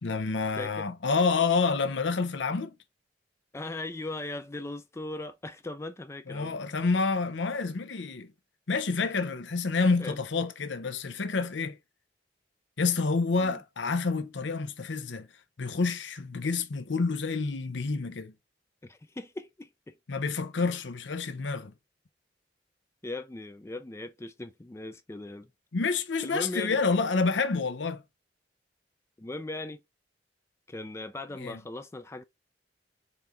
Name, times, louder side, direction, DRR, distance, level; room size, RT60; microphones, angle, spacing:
voice 1, 0.0-2.7 6.3-8.3 8.7-11.8 12.8-15.3 15.6-18.3 20.1-21.7 25.7-28.0 31.3-31.6, left 4 dB, 80° left, 0.7 m, -28 dB
voice 2, 0.6-0.9 3.5-6.6 8.9-9.1 10.0-10.2 13.4-13.6 18.8-20.0 23.0-25.5 26.2-26.8 29.2-29.8 30.7-32.2, left 2 dB, 15° left, 0.4 m, -39 dB
4.3 x 3.7 x 3.4 m
head